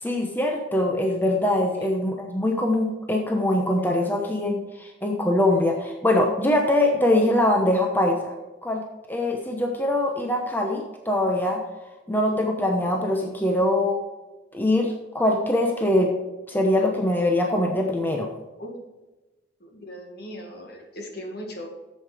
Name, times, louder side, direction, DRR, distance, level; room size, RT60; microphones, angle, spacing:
voice 1, 0.0-8.3 8.6-8.8 9.1-11.6 12.1-14.0 14.5-16.1 16.5-18.3, left 1 dB, 10° left, 2 dB, 0.9 m, -23 dB
voice 2, 19.6-21.7, equal, 55° left, 2 dB, 1.9 m, -38 dB
8.4 x 7.6 x 5.0 m, 1.1 s
head